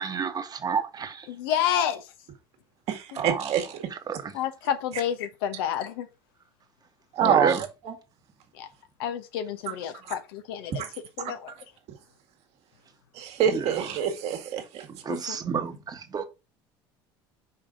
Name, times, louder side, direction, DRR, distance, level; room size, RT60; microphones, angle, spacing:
voice 1, 0.0-1.3 3.2-3.6 3.9-4.3 7.2-7.6 13.4-13.7 14.9-16.3, right 6 dB, 30° right, 1.4 m, -30 dB
voice 2, 1.3-2.0 4.3-6.1 8.6-8.7 9.0-10.7 11.2-11.5 15.1-15.2, left 10 dB, 75° left, 1.0 m, -29 dB
voice 3, 2.9-3.9 7.1-7.6 7.9-8.0 9.7-9.8 10.1-10.2 10.8-10.9 11.2-11.3 13.1-14.9, right 8 dB, 60° right, 1.8 m, -26 dB
5.6 x 4.9 x 3.8 m
hypercardioid pair, 80°, 12 cm